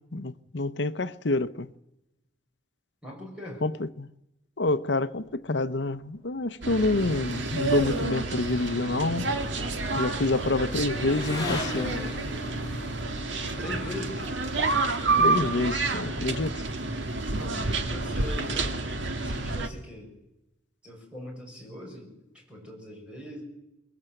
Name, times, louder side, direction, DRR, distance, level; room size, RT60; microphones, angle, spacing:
voice 1, 0.1-1.7 3.6-4.1 4.6-9.3 9.9-12.1 15.2-16.6, left 2 dB, 70° left, 0.9 m, -27 dB
voice 2, 3.0-3.6 13.6-14.3 17.3-18.8 19.2-20.1 20.8-22.2 22.5-23.4, left 1 dB, 5° right, 7.2 m, -40 dB
sound 1, 6.6-19.7, right 3 dB, 80° right, 1.7 m, -29 dB
Motorcycle / Accelerating revving vroom, 8.6-17.2, left 1 dB, 20° left, 7.5 m, -41 dB
23.5 x 21.0 x 7.9 m
head